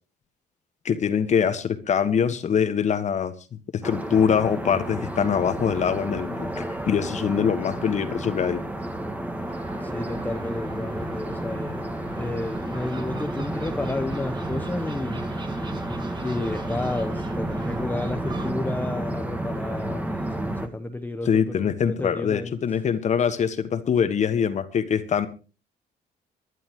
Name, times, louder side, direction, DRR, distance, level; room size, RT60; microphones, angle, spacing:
voice 1, 0.8-8.6 21.2-25.3, left 7 dB, 45° left, 1.5 m, -24 dB
sound 1, 3.8-20.7, right 1 dB, 10° right, 1.8 m, -31 dB
Gull seagull, 9.5-18.5, right 5 dB, 25° right, 1.9 m, -44 dB
voice 2, 9.8-15.5 16.2-22.6, left 2 dB, 10° left, 0.9 m, -32 dB
24.5 x 11.0 x 3.1 m
cardioid pair, 110°, 17 cm